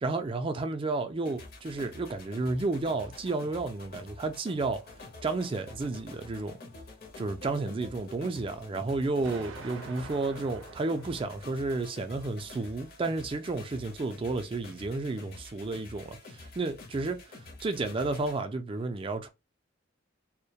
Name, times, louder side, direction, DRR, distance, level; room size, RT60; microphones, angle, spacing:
voice 1, 0.0-4.8 5.2-6.6 7.2-19.3, right 3 dB, 25° right, 0.3 m, -32 dB
sound 1, 1.2-18.4, left 2 dB, 50° left, 0.6 m, -48 dB
Explosion, 9.2-12.2, right 4 dB, 90° right, 0.5 m, -47 dB
2.2 x 2.0 x 2.8 m
head